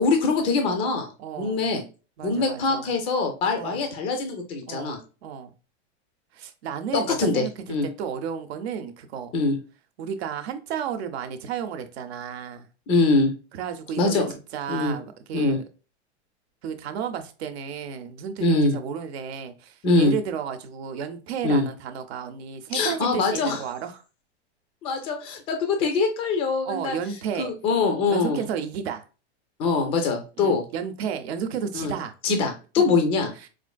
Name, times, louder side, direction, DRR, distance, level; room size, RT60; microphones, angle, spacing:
voice 1, 0.0-1.1 1.4-1.8 2.2-5.0 6.9-7.9 9.3-9.6 12.9-13.3 14.0-14.3 14.7-14.9 15.3-15.6 18.4-18.8 19.8-20.1 21.4-21.7 22.7-23.6 24.8-27.0 27.4-28.4 29.6-30.6 31.7-31.9 32.2-33.3, left 3 dB, 15° left, 0.4 m, -23 dB
voice 2, 1.2-1.6 2.2-2.9 3.5-3.9 4.7-5.5 6.3-9.3 10.0-12.7 13.5-14.3 14.5-15.6 16.6-24.0 26.6-27.5 28.1-29.0 30.4-32.1 32.8-32.9 33.4-33.5, right 7 dB, 65° right, 0.7 m, -32 dB
4.3 x 2.5 x 2.2 m
supercardioid pair, 160°, 34 cm